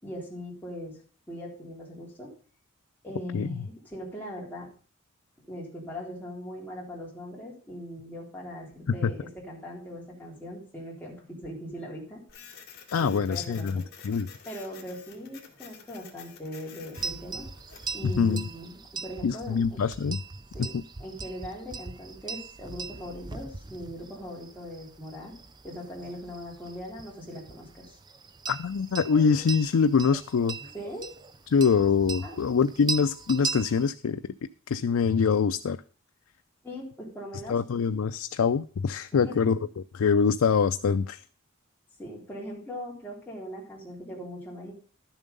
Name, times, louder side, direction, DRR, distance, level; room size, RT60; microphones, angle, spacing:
voice 1, 0.0-0.9 1.3-2.3 3.0-4.7 5.5-12.2 13.0-13.8 14.5-17.5 17.9-19.8 20.5-20.7 21.0-25.3 25.6-28.0 30.7-31.1 32.2-32.4 36.6-37.6 39.1-39.7 42.0-44.7, equal, 10° left, -4 dB, 3.7 m, -40 dB
Printer, 12.3-17.9, left 7 dB, 50° left, 2.1 m, -50 dB
voice 2, 12.9-14.3 18.0-18.5 19.2-20.2 20.6-20.8 28.5-30.6 31.5-34.2 34.7-35.8 37.5-39.6 39.9-41.2, left 5 dB, 90° left, 10 dB, 0.4 m, -24 dB
sound 1, 17.0-33.9, right 4 dB, 20° right, 0.5 m, -40 dB
11.5 x 7.2 x 5.3 m, 0.40 s
head